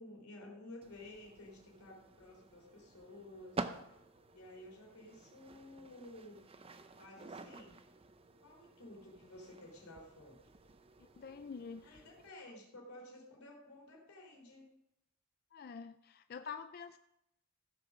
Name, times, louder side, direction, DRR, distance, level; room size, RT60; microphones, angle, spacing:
voice 1, 0.0-3.7 4.3-6.4 6.9-7.8 8.4-10.4 11.8-14.7, left 1 dB, 90° left, 3.6 m, -53 dB
sound 1, 0.8-12.3, right 3 dB, 25° right, 0.6 m, -50 dB
voice 2, 11.2-12.0 15.5-17.0, left 5 dB, 45° left, 0.3 m, -47 dB
15.0 x 6.9 x 6.1 m
head